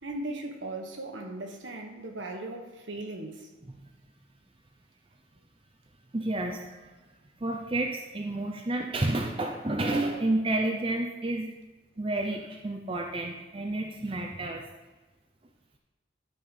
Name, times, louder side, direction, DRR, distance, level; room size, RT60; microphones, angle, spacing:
voice 1, 0.0-3.5, right 2 dB, 65° right, 3 dB, 1.3 m, -38 dB
voice 2, 6.1-6.9 7.4-11.5 12.0-14.7, right 2 dB, 25° right, 2 dB, 0.6 m, -30 dB
12.0 x 4.4 x 5.4 m, 1.2 s
head